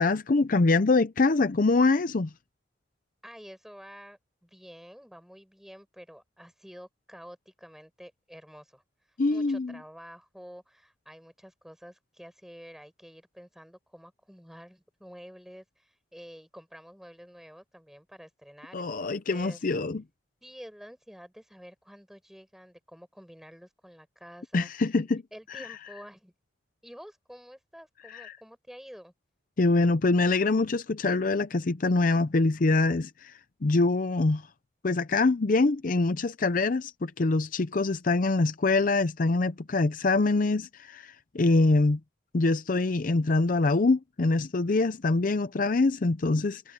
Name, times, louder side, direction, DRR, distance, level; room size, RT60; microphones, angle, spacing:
voice 1, 0.0-2.3 9.2-9.8 18.7-20.0 24.5-25.2 28.1-28.4 29.6-34.4 34.8-42.0 42.3-46.7, left 3 dB, 50° left, 0.6 m, -24 dB
voice 2, 3.2-8.8 9.3-19.6 20.4-24.7 25.3-26.3 26.8-29.1, equal, ahead, 8.0 m, -49 dB
head